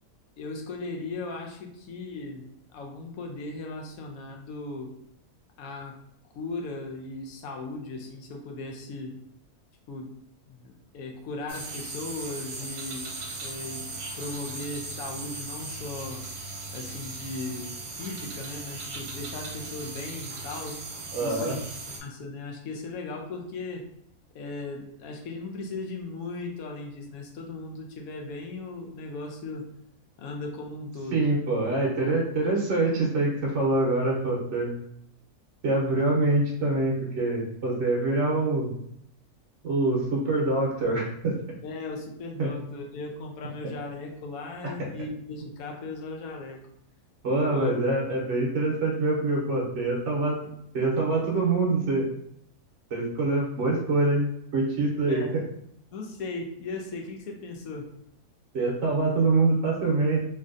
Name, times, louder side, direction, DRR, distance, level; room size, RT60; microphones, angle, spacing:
voice 1, 0.4-2.5 2.7-4.9 5.6-6.0 6.3-9.1 9.9-10.1 10.5-13.1 13.4-13.8 14.1-16.3 16.7-20.8 21.2-21.6 22.0-23.8 24.3-29.7 30.2-31.3 41.6-46.6 47.5-47.7 55.1-55.3 55.9-57.9, left 3 dB, 70° left, 2 dB, 1.0 m, -37 dB
sound 1, 11.5-22.0, right 3 dB, 80° right, 1.2 m, -38 dB
voice 2, 21.1-21.6 31.1-34.7 35.6-38.7 39.6-41.3 42.4-42.5 47.2-50.4 50.7-52.1 52.9-55.4 58.5-60.3, right 2 dB, 60° right, -3 dB, 0.9 m, -25 dB
3.2 x 2.6 x 2.5 m, 0.72 s
omnidirectional pair, 1.6 m